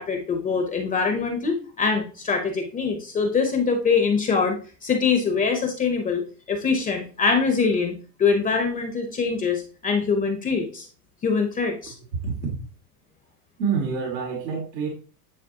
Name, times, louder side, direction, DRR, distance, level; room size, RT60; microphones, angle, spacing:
voice 1, 0.0-4.6 4.8-6.2 6.5-10.9 11.2-11.9, left 5 dB, 15° left, 4 dB, 0.7 m, -23 dB
voice 2, 12.1-12.6 13.6-14.9, right 5 dB, 80° right, 0 dB, 2.0 m, -27 dB
9.5 x 4.0 x 2.8 m, 0.38 s
supercardioid pair, 140°, 48 cm